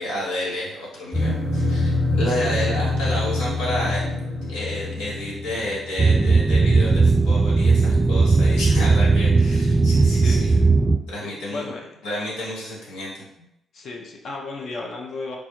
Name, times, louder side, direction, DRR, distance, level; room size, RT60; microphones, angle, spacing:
voice 1, 0.0-4.0 4.4-10.5 11.1-11.6 12.0-13.1, left 1 dB, 75° left, -6 dB, 1.0 m, -30 dB
sound 1, 1.1-5.9, left 2 dB, 5° right, 0.9 m, -25 dB
sound 2, 6.0-11.0, right 3 dB, 40° right, 0.3 m, -17 dB
voice 2, 9.7-10.7 11.2-11.8 13.4-13.5 13.7-15.4, left 3 dB, 60° left, 0 dB, 0.6 m, -35 dB
3.2 x 2.2 x 3.0 m, 0.82 s
hypercardioid pair, 45°, 0 cm